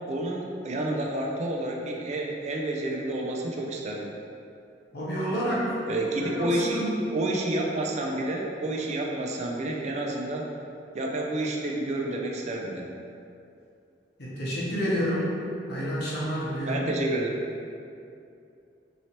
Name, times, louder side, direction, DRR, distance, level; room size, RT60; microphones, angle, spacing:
voice 1, 0.1-4.1 5.9-10.5 10.9-12.9 16.7-17.3, right 1 dB, 40° right, 0 dB, 0.3 m, -29 dB
voice 2, 4.9-5.7 6.1-7.1 14.2-15.4 15.7-16.8, equal, 65° left, -7 dB, 0.9 m, -29 dB
3.1 x 2.8 x 2.8 m, 2.6 s
head